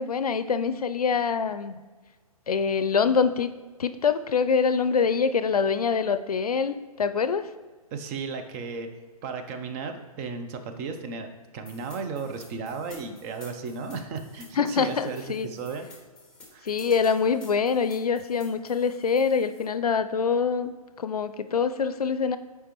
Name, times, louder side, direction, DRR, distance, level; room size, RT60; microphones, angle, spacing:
voice 1, 0.0-1.8 2.5-3.5 3.8-7.5 14.6-15.5 16.6-22.4, left 6 dB, 80° left, 11 dB, 0.5 m, -25 dB
voice 2, 7.9-8.9 9.2-15.9 16.5-16.7, right 4 dB, 25° right, 6 dB, 0.6 m, -35 dB
sound 1, 11.6-19.6, left 2 dB, 5° left, 1.4 m, -51 dB
8.0 x 4.6 x 3.0 m, 1.4 s
figure-of-eight pair, 130°, 19 cm